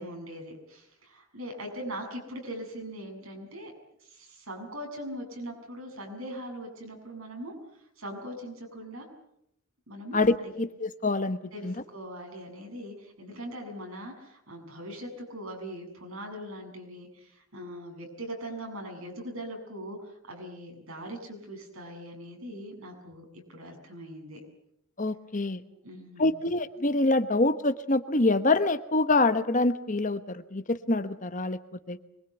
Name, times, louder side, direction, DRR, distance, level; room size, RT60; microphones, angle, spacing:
voice 1, 0.0-3.7 4.0-7.5 8.0-9.1 9.9-10.2 11.5-24.4 25.8-26.3, equal, 75° right, 3 dB, 7.7 m, -41 dB
voice 2, 10.1-11.7 25.0-25.6 26.2-31.6 31.9-32.0, left 2 dB, 35° left, 11 dB, 1.1 m, -26 dB
25.0 x 22.5 x 8.1 m, 0.77 s
head